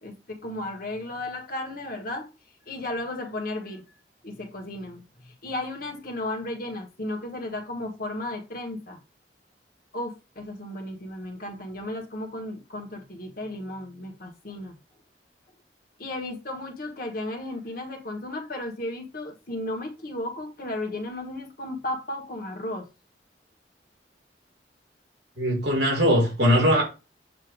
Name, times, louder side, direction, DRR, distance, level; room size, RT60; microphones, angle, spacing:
voice 1, 0.0-2.3 2.7-3.8 4.2-9.0 9.9-14.8 16.0-22.9, left 1 dB, 55° left, 1.5 m, -34 dB
voice 2, 25.4-26.8, equal, 75° right, 2.9 m, -20 dB
7.5 x 2.8 x 4.9 m
head